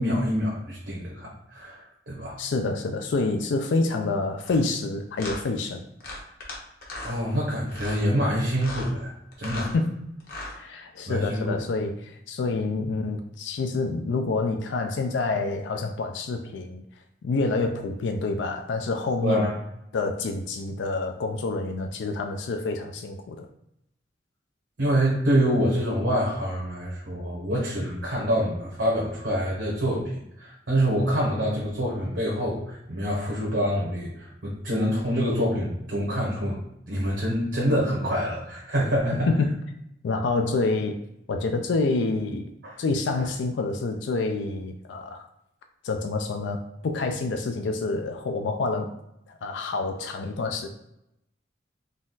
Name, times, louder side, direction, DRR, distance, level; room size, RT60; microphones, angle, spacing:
voice 1, 0.0-2.4 7.0-9.1 9.4-9.7 11.1-11.6 19.2-19.5 24.8-36.6 36.9-39.3 42.6-42.8, equal, 75° right, -3 dB, 1.0 m, -26 dB
voice 2, 2.4-5.8 9.7-10.0 10.5-16.8 17.2-19.5 19.9-23.5 39.3-39.6 40.0-41.0 41.3-42.5 42.8-45.3 45.8-49.0 49.3-50.7, left 3 dB, 75° left, 5 dB, 0.4 m, -27 dB
sound 1, 4.4-4.6 5.2-5.4 6.0-6.6 6.8-7.2 7.7-8.0 8.5-8.9 9.3-9.7 10.2-10.6, left 2 dB, 55° left, 1.1 m, -37 dB
4.0 x 2.3 x 3.9 m, 0.82 s
head